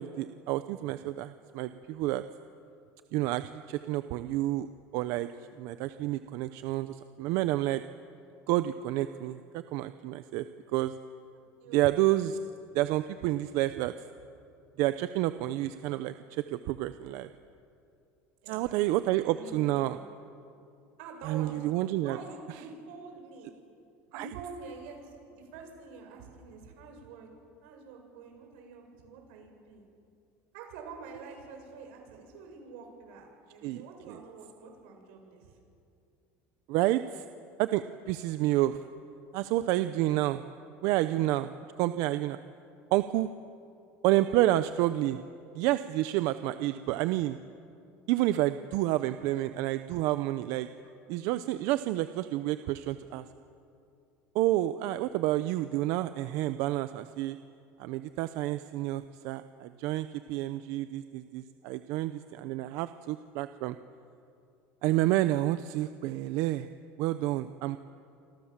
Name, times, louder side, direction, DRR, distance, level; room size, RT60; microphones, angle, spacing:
voice 1, 0.0-2.2 3.1-4.7 4.9-5.3 5.6-7.8 8.5-10.5 10.7-10.9 11.7-12.4 12.7-13.9 14.8-17.3 18.5-20.0 21.2-22.2 24.1-24.3 33.6-33.8 34.1-34.2 36.7-37.2 37.6-38.8 39.3-40.4 40.8-41.5 41.8-42.4 42.9-43.3 44.0-45.2 45.5-47.4 48.1-50.7 51.1-53.2 54.3-57.4 57.8-63.8 64.8-66.7 67.0-67.8, right 15 dB, 60° right, 11 dB, 0.8 m, -29 dB
voice 2, 11.6-12.0 18.4-20.1 21.0-23.5 24.1-27.3 27.6-29.9 30.5-35.6, right 4 dB, 85° right, 2 dB, 7.5 m, -47 dB
28.0 x 26.0 x 7.5 m, 2.5 s
cardioid pair, 170°, 6 cm